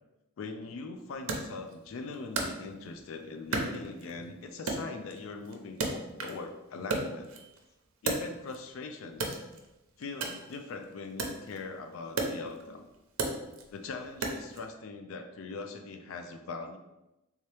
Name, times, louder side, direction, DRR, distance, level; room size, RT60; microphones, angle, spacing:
voice 1, 0.4-7.3 8.0-9.4 10.0-12.9 13.7-16.8, left 3 dB, 70° left, 5 dB, 0.4 m, -41 dB
Wood, 1.3-3.1 3.5-4.3 4.7-6.5 6.8-8.7 9.1-14.7, right 3 dB, 75° right, 0.6 m, -35 dB
3.5 x 2.8 x 3.3 m, 0.97 s
head